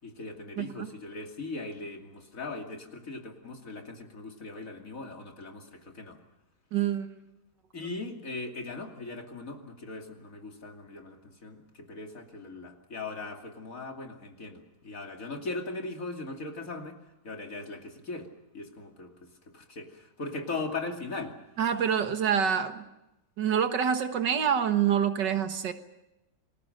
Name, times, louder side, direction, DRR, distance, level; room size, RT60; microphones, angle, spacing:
voice 1, 0.0-6.2 7.7-17.0 17.2-18.3 18.5-19.3 19.5-21.3, left 3 dB, 50° left, 3 dB, 3.1 m, -39 dB
voice 2, 0.6-0.9 6.7-7.3 21.6-22.8 23.4-25.7, right 8 dB, 90° right, 8 dB, 2.1 m, -26 dB
29.0 x 21.0 x 6.6 m, 0.93 s
omnidirectional pair, 1.8 m